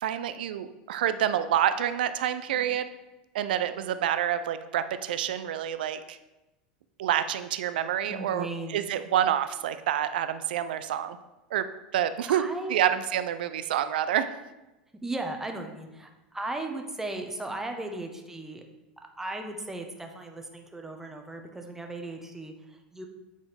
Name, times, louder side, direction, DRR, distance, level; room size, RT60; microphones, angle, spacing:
voice 1, 0.0-2.9 3.3-6.2 7.0-8.5 8.7-11.2 11.5-11.7 11.9-12.4 12.7-14.3, right 10 dB, 75° right, 12 dB, 0.4 m, -27 dB
voice 2, 8.1-8.8 12.3-12.8 15.0-18.6 19.2-23.1, right 2 dB, 10° right, 3 dB, 0.9 m, -36 dB
8.2 x 4.1 x 3.3 m, 1.0 s
hypercardioid pair, 95°, 5 cm